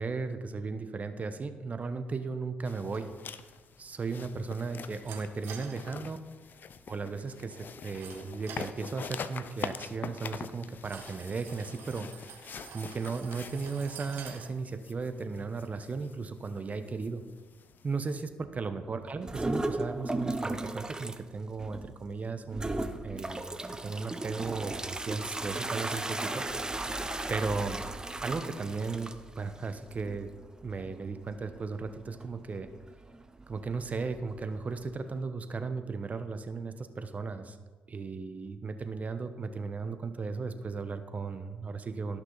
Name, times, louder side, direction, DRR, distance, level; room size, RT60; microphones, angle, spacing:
voice 1, 0.0-3.1 3.8-6.2 6.9-17.2 17.8-23.5 23.8-26.7 27.3-27.8 28.2-30.3 30.6-32.7 33.5-37.6 37.9-42.2, right 4 dB, 40° right, 9 dB, 1.0 m, -36 dB
sound 1, 2.6-18.2, left 6 dB, 55° left, 0.6 m, -45 dB
sound 2, 2.9-16.2, right 6 dB, 80° right, 1.7 m, -51 dB
sound 3, 19.2-21.2 21.6-22.1 22.5-35.2, right 2 dB, 20° right, 0.9 m, -36 dB
17.0 x 6.1 x 4.0 m, 1.4 s
supercardioid pair, 60°, 4 cm